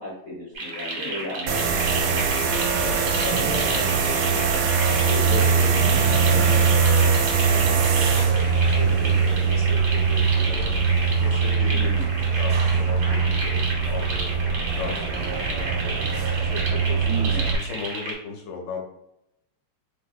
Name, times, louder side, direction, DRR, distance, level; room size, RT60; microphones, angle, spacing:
voice 1, 0.0-1.7 11.7-12.1 17.0-17.5, right 1 dB, 45° left, -7 dB, 0.8 m, -34 dB
sound 1, 0.5-18.1, right 2 dB, 55° right, 1.4 m, -33 dB
sound 2, 1.5-17.6, right 5 dB, 75° right, 1.4 m, -22 dB
voice 2, 2.5-4.5 4.9-7.2 7.5-10.8 11.2-16.0 16.4-18.8, left 4 dB, 65° left, 2 dB, 1.3 m, -36 dB
3.6 x 3.4 x 2.2 m, 0.79 s
omnidirectional pair, 2.4 m